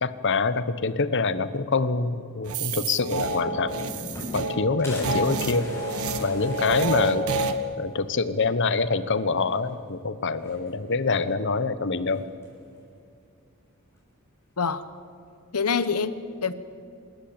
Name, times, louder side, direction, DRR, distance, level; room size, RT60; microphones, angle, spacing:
voice 1, 0.0-3.7 4.3-5.7 6.2-7.3 7.8-12.3, left 4 dB, 55° left, 14 dB, 0.9 m, -25 dB
sound 1, 2.5-7.5, right 3 dB, 75° right, 1.3 m, -29 dB
sound 2, 2.9-3.0 3.2-4.5 4.8-7.4 7.9-8.0 8.2-8.3 9.5-9.9 10.3-11.0 12.1-12.7, left 1 dB, 10° left, 7.1 m, -40 dB
voice 2, 14.6-14.9 15.5-16.5, left 5 dB, 80° left, 13 dB, 1.1 m, -26 dB
27.5 x 13.5 x 8.8 m, 2.5 s
head